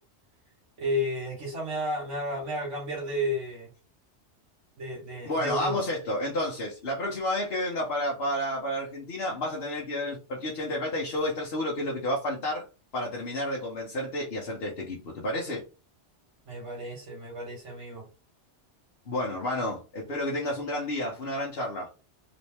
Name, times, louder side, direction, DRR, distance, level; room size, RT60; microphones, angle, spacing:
voice 1, 0.8-3.7 4.8-5.8 16.5-18.0, equal, 85° right, 1.8 m, -32 dB
voice 2, 5.2-12.6 12.9-15.6 19.1-21.9, left 1 dB, 55° left, 1.2 m, -31 dB
4.0 x 3.1 x 3.4 m
omnidirectional pair, 1.2 m